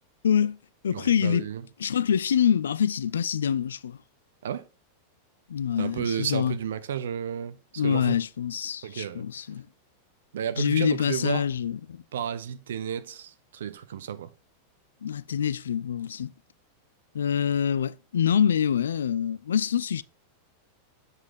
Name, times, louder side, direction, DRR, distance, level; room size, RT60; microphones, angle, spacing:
voice 1, 0.2-0.6 0.8-1.5 1.8-4.0 5.5-6.5 7.8-9.7 10.6-12.0 15.0-16.3 17.1-20.0, left 8 dB, 65° left, 0.3 m, -25 dB
voice 2, 0.9-1.6 4.4-4.7 5.8-8.1 8.8-9.2 10.3-11.5 12.1-14.3, right 9 dB, 60° right, 0.6 m, -32 dB
7.3 x 4.1 x 4.9 m
figure-of-eight pair, 90°, 0 cm